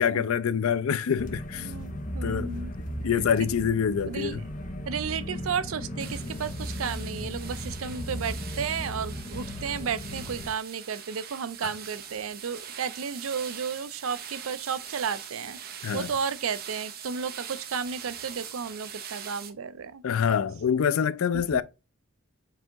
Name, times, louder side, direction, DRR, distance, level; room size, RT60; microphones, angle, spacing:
voice 1, 0.0-1.7 2.2-2.5 3.0-4.4 15.8-16.1 20.0-21.6, left 7 dB, 85° left, 0.4 m, -25 dB
sound 1, 1.1-10.5, equal, 40° left, 0.8 m, -36 dB
voice 2, 1.6-2.7 4.0-4.4 4.9-15.6 15.9-20.0 21.3-21.6, right 6 dB, 75° right, 0.5 m, -33 dB
sound 2, 6.0-19.5, right 8 dB, 45° right, 0.8 m, -42 dB
4.9 x 2.8 x 3.4 m
head